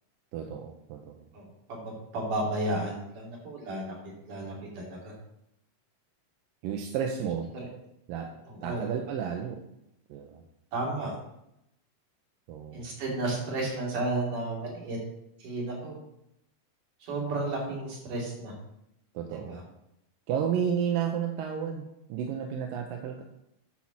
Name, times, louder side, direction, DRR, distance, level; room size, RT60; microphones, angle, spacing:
voice 1, 0.3-1.3 6.6-7.5 8.1-8.3 8.6-9.6 10.1-10.4 12.5-12.9 19.1-19.6 20.3-23.2, right 8 dB, 75° right, 2 dB, 2.3 m, -32 dB
voice 2, 1.7-3.9 4.3-5.1 7.5-7.7 8.5-8.9 10.7-11.2 12.7-15.0 15.4-15.9 17.0-18.5 19.3-19.6, right 2 dB, 60° right, -3 dB, 4.3 m, -33 dB
10.0 x 4.6 x 7.2 m, 0.80 s
omnidirectional pair, 4.3 m